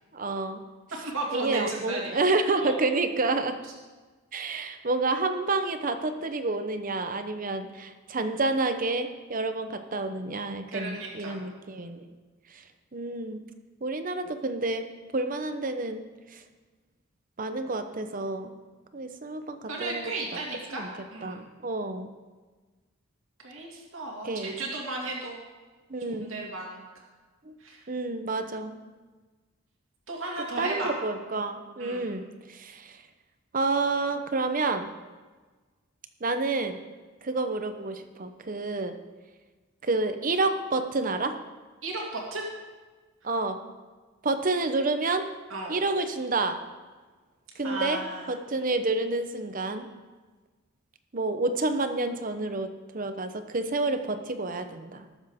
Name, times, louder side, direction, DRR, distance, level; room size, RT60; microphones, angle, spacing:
voice 1, 0.1-0.6 1.3-3.6 4.3-12.0 12.9-13.4 13.8-14.9 15.1-16.1 16.3-16.4 17.4-18.5 18.9-20.1 20.7-20.9 21.2-22.1 24.2-24.5 25.9-26.3 27.5-27.6 27.9-28.8 30.6-33.0 33.5-34.9 36.2-36.8 37.2-39.0 39.8-41.4 43.2-43.6 44.2-45.3 45.7-46.6 47.6-48.0 48.3-49.9 51.1-55.1, right 3 dB, 40° right, 8 dB, 0.8 m, -29 dB
voice 2, 0.9-2.1 2.6-2.8 10.7-11.4 19.7-21.4 23.4-25.4 26.1-26.8 27.6-27.8 30.1-31.0 31.8-32.1 41.8-42.5 45.5-45.8 47.6-48.3, right 2 dB, 70° right, -2 dB, 2.2 m, -34 dB
19.5 x 7.2 x 3.6 m, 1.4 s
head